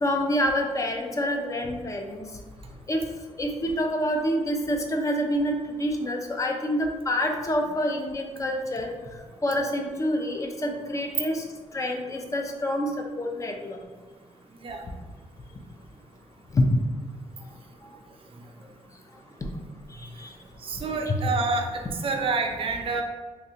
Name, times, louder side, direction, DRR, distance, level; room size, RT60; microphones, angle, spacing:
voice 1, 0.0-2.2 2.9-3.0 3.4-8.9 9.4-11.5 11.7-13.8 16.5-16.7 19.4-19.5 20.0-20.3 21.1-21.2, left 1 dB, 25° left, 3 dB, 0.4 m, -27 dB
voice 2, 20.6-23.0, right 3 dB, 45° right, 3 dB, 0.4 m, -28 dB
3.3 x 2.6 x 2.8 m, 1.3 s
cardioid pair, 110°, 12 cm